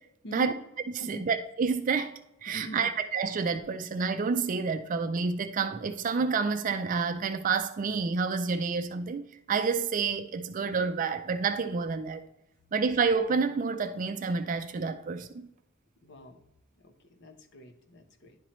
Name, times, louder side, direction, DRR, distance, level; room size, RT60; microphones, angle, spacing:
voice 1, 0.2-0.5 1.0-1.3 2.5-2.9 16.0-16.4 16.8-18.4, equal, 60° left, 0.8 m, -44 dB
voice 2, 1.1-12.2 12.7-15.5, right 5 dB, 40° right, 0.4 m, -29 dB
10.5 x 4.3 x 3.1 m
head